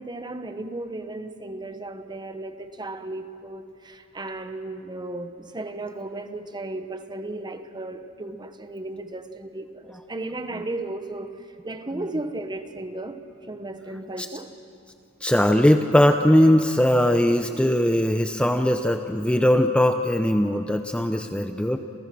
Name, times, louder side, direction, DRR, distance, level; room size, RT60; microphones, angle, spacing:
voice 1, 0.0-11.3 11.6-13.2 13.5-14.5, right 2 dB, 20° right, 1.2 m, -35 dB
voice 2, 15.2-21.8, left 1 dB, 5° left, 0.7 m, -20 dB
29.5 x 29.0 x 6.2 m
head